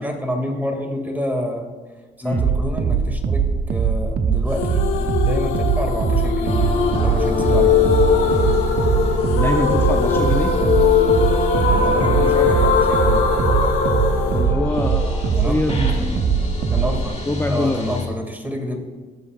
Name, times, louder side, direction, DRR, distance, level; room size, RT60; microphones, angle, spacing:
voice 1, 0.0-1.7 2.2-6.6 7.0-7.8 11.7-13.3 15.3-16.2 16.7-17.2 17.5-18.8, equal, 10° right, 3 dB, 2.2 m, -28 dB
sound 1, 2.3-17.1, right 6 dB, 50° right, 0.9 m, -21 dB
sound 2, 4.6-15.5, left 6 dB, 85° left, 1.1 m, -20 dB
sound 3, 6.4-18.1, left 3 dB, 30° left, 2.2 m, -30 dB
voice 2, 9.3-10.5 14.3-16.2 17.3-17.8, left 1 dB, 10° left, 5 dB, 0.6 m, -24 dB
15.5 x 6.8 x 2.4 m, 1.3 s
supercardioid pair, 55°, 20 cm